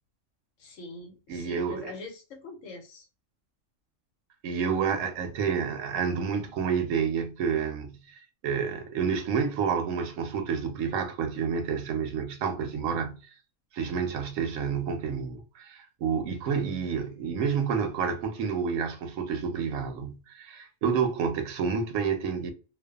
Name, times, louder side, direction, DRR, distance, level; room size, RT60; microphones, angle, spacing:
voice 1, 0.6-3.1, left 3 dB, 75° left, 1.1 m, -43 dB
voice 2, 1.3-1.9 4.4-13.3 13.7-22.5, right 6 dB, 90° right, 1.0 m, -29 dB
2.5 x 2.2 x 2.3 m
omnidirectional pair, 1.4 m